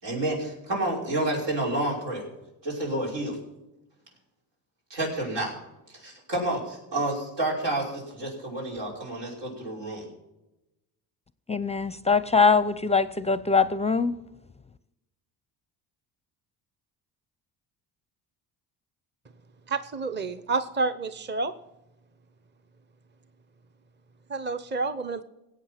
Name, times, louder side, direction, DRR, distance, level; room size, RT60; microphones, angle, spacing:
voice 1, 0.0-2.3 2.6-3.4 4.9-5.5 5.9-10.1, right 1 dB, 85° right, -3 dB, 5.8 m, -29 dB
voice 2, 11.5-14.2, left 5 dB, 15° left, 16 dB, 0.5 m, -22 dB
voice 3, 19.7-21.5 24.3-25.2, right 3 dB, 25° right, 11 dB, 0.9 m, -29 dB
18.0 x 8.3 x 5.9 m, 0.95 s
supercardioid pair, 80°, 43 cm